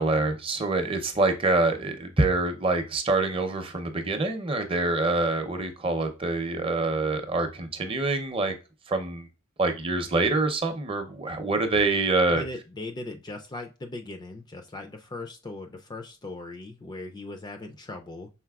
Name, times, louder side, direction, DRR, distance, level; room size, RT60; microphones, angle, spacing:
voice 1, 0.0-8.5 8.9-9.3 9.6-12.4, right 3 dB, 25° right, 7 dB, 0.6 m, -25 dB
voice 2, 12.3-18.3, left 2 dB, 20° left, 5 dB, 0.3 m, -39 dB
5.7 x 3.9 x 2.3 m, 0.30 s
head